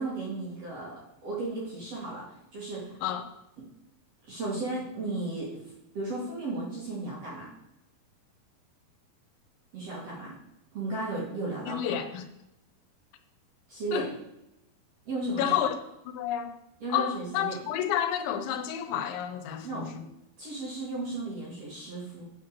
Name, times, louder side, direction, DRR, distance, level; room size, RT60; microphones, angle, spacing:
voice 1, 0.0-3.0 4.3-5.6 5.9-7.5 9.7-10.3 10.7-12.0 13.7-14.1 15.1-15.6 16.8-17.6 19.6-19.9 20.4-22.2, right 2 dB, 45° right, -5 dB, 2.3 m, -35 dB
voice 2, 11.7-12.2 13.9-14.1 15.4-15.8 16.1-16.5 16.9-20.1, left 10 dB, 80° left, 6 dB, 3.2 m, -30 dB
8.3 x 5.7 x 6.7 m, 0.88 s
omnidirectional pair, 5.3 m